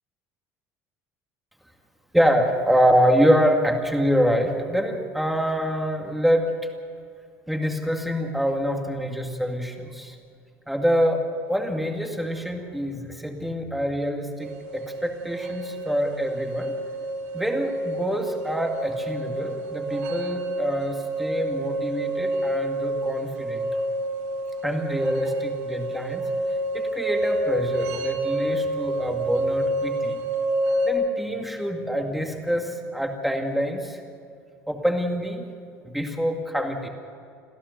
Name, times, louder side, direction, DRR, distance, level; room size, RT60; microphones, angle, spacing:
voice 1, 2.1-6.5 7.5-10.1 10.7-16.8 17.3-23.7 24.6-26.2 26.7-30.2 30.8-34.0 34.7-35.5 35.8-36.9, equal, ahead, 2 dB, 2.2 m, -25 dB
sound 1, 14.4-30.9, right 1 dB, 75° right, 6.2 m, -28 dB
27.0 x 15.5 x 6.9 m, 2.5 s
cardioid pair, 165°, 6 cm